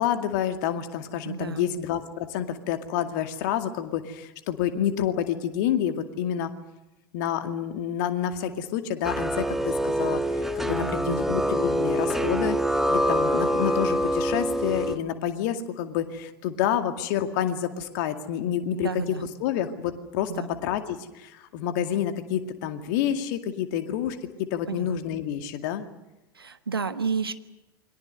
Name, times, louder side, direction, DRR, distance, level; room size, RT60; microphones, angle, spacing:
voice 1, 0.0-6.5 7.1-12.6 12.9-24.2 24.5-25.9, left 10 dB, 50° left, 8 dB, 2.2 m, -28 dB
voice 2, 1.2-1.7 10.6-11.2 18.7-19.2 20.3-20.5 24.7-25.0 26.4-27.3, right 5 dB, 80° right, 11 dB, 1.4 m, -31 dB
sound 1, 9.0-15.0, equal, ahead, 1.4 m, -25 dB
28.5 x 23.0 x 6.7 m, 0.95 s
figure-of-eight pair, 85°, 12 cm